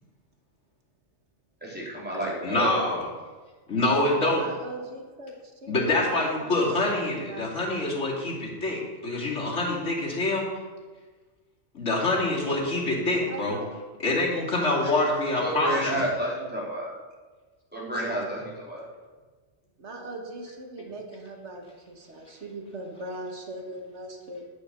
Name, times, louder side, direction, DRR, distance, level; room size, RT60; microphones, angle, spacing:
voice 1, 1.6-3.0 15.4-16.9 17.7-18.9, equal, 10° right, -6 dB, 4.0 m, -30 dB
voice 2, 2.4-3.0 3.7-4.4 5.7-10.4 11.7-13.6 14.0-16.0, left 2 dB, 80° left, -4 dB, 3.1 m, -26 dB
voice 3, 3.9-8.1 13.1-13.8 18.0-18.2 19.8-24.5, right 2 dB, 70° right, 2 dB, 1.9 m, -40 dB
11.5 x 6.7 x 6.9 m, 1.4 s
omnidirectional pair, 1.2 m